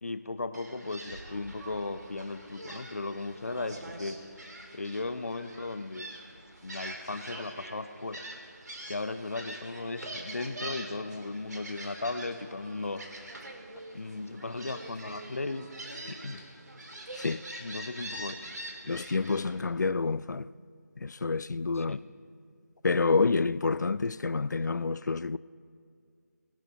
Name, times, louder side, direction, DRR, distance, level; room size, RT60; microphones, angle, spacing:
voice 1, 0.0-4.2 4.7-6.1 6.6-8.2 8.9-13.0 13.9-15.7 16.1-16.4 17.6-18.4 21.8-22.0, left 3 dB, 50° left, 0.7 m, -36 dB
Gull seagull, 0.5-19.6, right 1 dB, 70° right, 2.0 m, -44 dB
voice 2, 17.1-17.4 18.9-20.5 21.0-22.0 22.8-25.4, left 4 dB, 80° left, 0.4 m, -28 dB
20.5 x 12.0 x 2.9 m
figure-of-eight pair, 175°, 10 cm